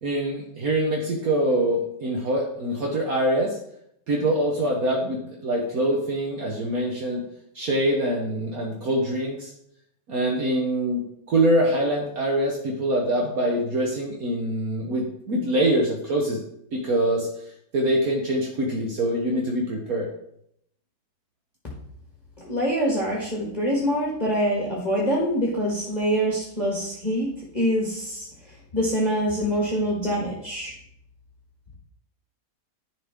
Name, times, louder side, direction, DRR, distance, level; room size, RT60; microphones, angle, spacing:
voice 1, 0.0-3.6 4.1-7.2 7.5-9.5 10.1-16.4 16.7-17.3 17.7-20.1, right 1 dB, 60° right, -1 dB, 1.5 m, -24 dB
voice 2, 22.4-27.3 27.5-28.3 28.7-30.7, equal, 25° left, -4 dB, 1.7 m, -25 dB
10.5 x 5.6 x 3.7 m, 0.73 s
omnidirectional pair, 1.8 m